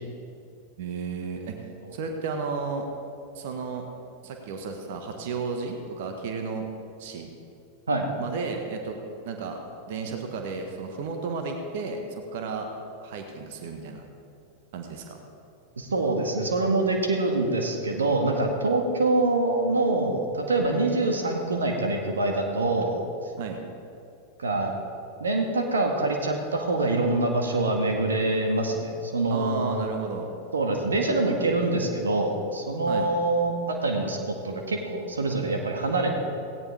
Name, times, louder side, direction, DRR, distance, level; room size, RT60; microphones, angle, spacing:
voice 1, 0.8-1.6 1.9-2.8 3.3-3.9 4.2-6.7 7.0-7.3 8.2-9.0 9.2-9.6 9.9-12.7 13.0-14.0 14.7-15.2 23.4-23.6 29.3-30.3 32.9-33.1, right 4 dB, 50° right, 4 dB, 1.7 m, -33 dB
voice 2, 15.8-23.0 24.4-24.7 25.2-29.9 30.5-36.2, right 2 dB, 70° right, 2 dB, 1.7 m, -25 dB
17.5 x 17.0 x 3.6 m, 2.5 s
figure-of-eight pair, 90°, 0 cm